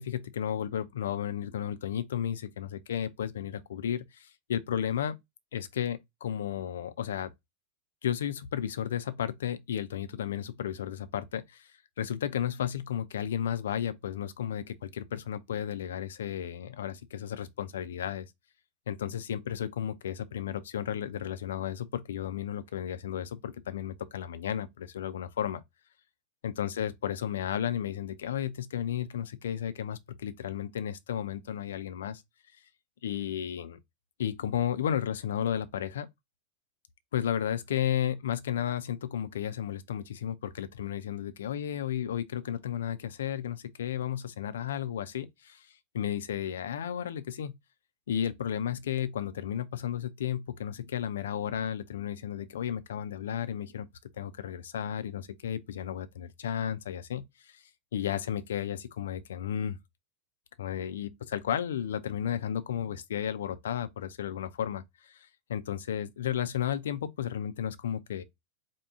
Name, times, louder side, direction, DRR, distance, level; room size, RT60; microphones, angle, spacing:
voice 1, 0.0-5.2 5.5-7.3 8.0-11.7 12.0-18.3 18.9-25.6 26.4-32.2 33.0-33.8 34.2-36.1 37.1-45.7 45.9-47.5 48.1-53.9 54.1-57.6 57.9-59.8 60.6-68.2, left 9 dB, 60° left, 0.5 m, -33 dB
4.6 x 2.2 x 3.6 m
figure-of-eight pair, 90°, 0 cm